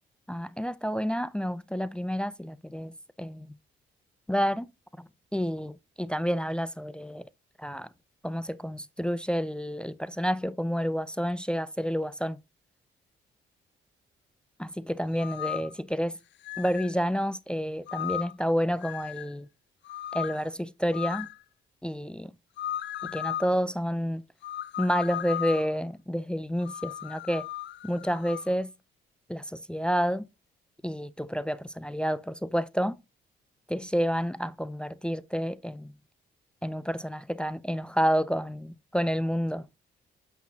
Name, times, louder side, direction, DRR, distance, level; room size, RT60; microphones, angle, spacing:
voice 1, 0.3-3.5 4.3-4.7 5.0-7.3 7.6-7.9 8.2-12.4 14.6-16.2 16.6-19.5 20.1-21.3 21.8-22.3 23.0-24.2 24.8-27.4 27.8-28.7 29.3-30.3 30.8-33.0 33.7-35.9 36.6-39.6, equal, 5° left, 0.4 m, -29 dB
sound 1, 15.1-15.7 16.4-16.9 17.9-18.4 18.8-19.3 19.8-20.4 20.9-21.4 22.6-23.5 24.4-25.8 26.6-28.5, left 11 dB, 65° left, 0.5 m, -36 dB
8.3 x 6.0 x 2.7 m
cardioid pair, 90°, 20 cm